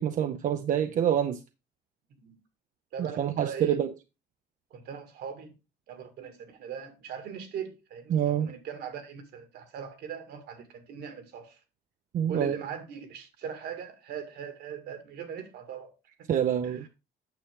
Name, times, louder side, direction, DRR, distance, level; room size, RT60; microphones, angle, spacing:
voice 1, 0.0-1.4 3.2-3.9 8.1-8.5 12.1-12.6 16.3-16.9, right 9 dB, 50° right, 0.6 m, -26 dB
voice 2, 2.9-3.8 4.7-5.5 5.9-11.6 12.3-15.9 16.2-16.9, right 7 dB, 75° right, 2.0 m, -40 dB
8.9 x 6.4 x 3.6 m
cardioid pair, 110°, 17 cm